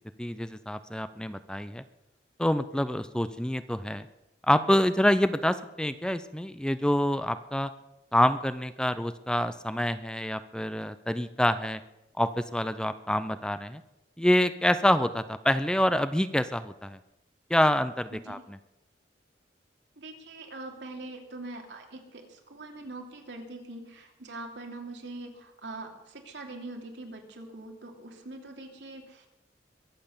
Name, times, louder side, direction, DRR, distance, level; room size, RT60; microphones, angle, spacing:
voice 1, 0.2-1.8 2.4-4.1 4.5-7.7 8.1-11.8 12.2-13.8 14.2-17.0 17.5-18.6, left 1 dB, 5° left, 12 dB, 0.5 m, -26 dB
voice 2, 18.1-18.4 20.0-29.3, right 2 dB, 90° right, 2 dB, 2.7 m, -43 dB
22.0 x 7.7 x 6.9 m, 0.92 s
head